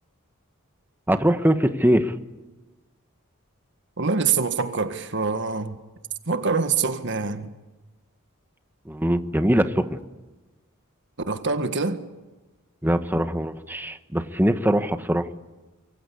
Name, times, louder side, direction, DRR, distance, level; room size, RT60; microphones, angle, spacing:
voice 1, 1.1-2.1 8.9-10.0 12.8-15.2, equal, 10° right, 1.3 m, -22 dB
voice 2, 4.0-5.8 6.3-7.5 11.3-12.0, right 4 dB, 55° right, 1.7 m, -25 dB
25.5 x 23.5 x 8.5 m
head